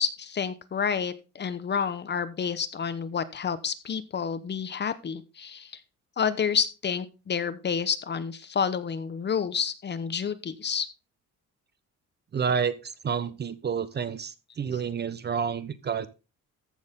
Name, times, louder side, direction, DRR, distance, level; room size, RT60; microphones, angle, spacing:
voice 1, 0.0-5.7 6.2-10.9, left 7 dB, 35° left, 13 dB, 0.9 m, -29 dB
voice 2, 12.3-16.1, right 6 dB, 35° right, 15 dB, 0.8 m, -29 dB
14.5 x 6.4 x 3.7 m, 0.30 s
cardioid pair, 150°, 31 cm